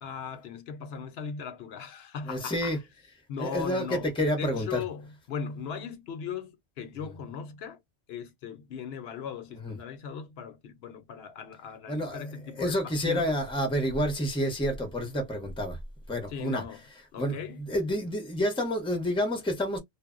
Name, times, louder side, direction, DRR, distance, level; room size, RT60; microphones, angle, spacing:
voice 1, 0.0-2.8 3.3-4.1 4.4-7.8 8.1-13.4 16.3-16.8 17.1-17.6, left 6 dB, 75° left, 0.8 m, -38 dB
voice 2, 2.3-2.8 3.4-4.8 9.6-9.7 11.9-12.2 12.6-15.8 16.1-16.6 17.2-19.8, equal, 5° left, 0.6 m, -29 dB
2.0 x 2.0 x 3.5 m
omnidirectional pair, 1.1 m